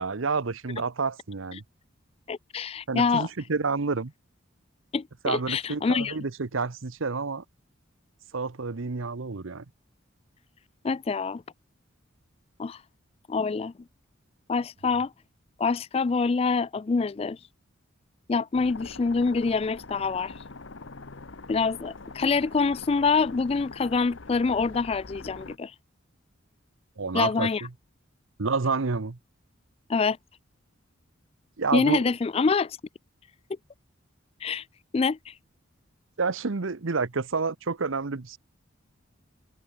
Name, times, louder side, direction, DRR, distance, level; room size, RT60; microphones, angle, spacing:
voice 1, 0.0-1.6 2.9-4.1 5.2-7.4 8.3-9.6 27.0-27.7 28.4-29.2 31.6-32.0 36.2-38.4, right 4 dB, 75° right, 0.9 m, -29 dB
voice 2, 2.3-3.3 4.9-6.1 10.8-11.4 12.6-12.8 13.3-13.7 14.5-15.1 15.6-17.4 18.3-20.3 21.5-25.7 27.1-27.6 29.9-30.2 31.7-32.8 34.4-34.6 34.9-35.3, left 4 dB, 30° left, 0.3 m, -25 dB
sound 1, 18.5-25.6, left 3 dB, 65° left, 1.2 m, -43 dB
head